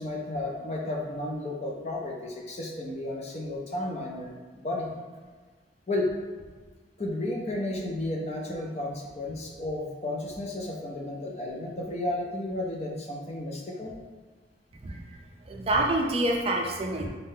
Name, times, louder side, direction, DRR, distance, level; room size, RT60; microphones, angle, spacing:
voice 1, 0.0-4.9 5.9-6.1 7.0-14.0, left 1 dB, 35° left, 0 dB, 0.5 m, -33 dB
voice 2, 14.8-15.2 15.5-17.1, right 1 dB, 30° right, 1 dB, 0.4 m, -27 dB
3.9 x 3.8 x 2.7 m, 1.4 s
head